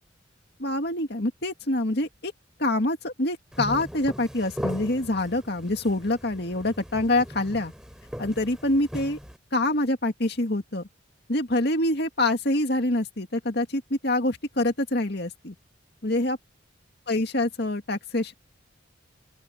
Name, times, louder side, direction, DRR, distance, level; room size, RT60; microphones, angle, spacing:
voice 1, 0.6-2.3 2.6-7.7 8.2-9.2 9.5-10.9 11.3-15.5 16.0-16.4 17.1-18.3, left 1 dB, 55° left, 2.3 m, -26 dB
sound 1, 3.5-9.4, equal, 5° right, 3.0 m, -38 dB
open air
head